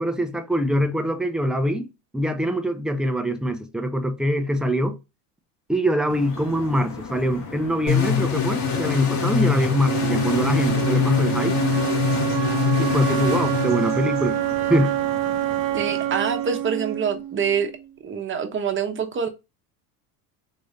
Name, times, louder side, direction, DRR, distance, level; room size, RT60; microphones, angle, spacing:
voice 1, 0.0-1.9 2.1-5.0 5.7-11.6 12.8-14.4 14.7-15.0, equal, ahead, 0.5 m, -23 dB
sound 1, 6.1-17.1, left 3 dB, 45° left, 1.6 m, -38 dB
sound 2, 7.9-14.4, left 6 dB, 65° left, 2.4 m, -23 dB
Wind instrument woodwind instrument, 9.8-17.8, right 13 dB, 70° right, 0.7 m, -26 dB
voice 2, 15.7-17.7 18.0-19.3, right 6 dB, 25° right, 1.0 m, -25 dB
3.8 x 3.1 x 2.7 m
supercardioid pair, 100°, 46 cm